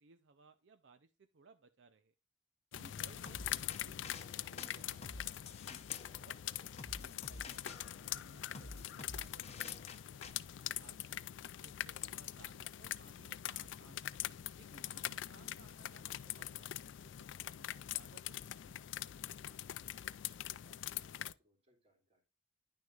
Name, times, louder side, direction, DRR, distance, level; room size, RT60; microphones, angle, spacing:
voice 1, 0.0-2.1 2.7-5.5 6.2-10.3 10.5-11.2 11.6-14.1 14.5-18.9 19.2-19.3, right 4 dB, 75° right, 10 dB, 0.5 m, -64 dB
sound 1, 2.7-21.3, left 12 dB, 85° left, 0.4 m, -43 dB
sound 2, 3.3-10.3, left 3 dB, 35° left, 0.7 m, -51 dB
voice 2, 11.1-11.7 20.3-22.2, equal, 35° right, 2 dB, 2.6 m, -73 dB
10.0 x 6.3 x 2.4 m, 0.30 s
head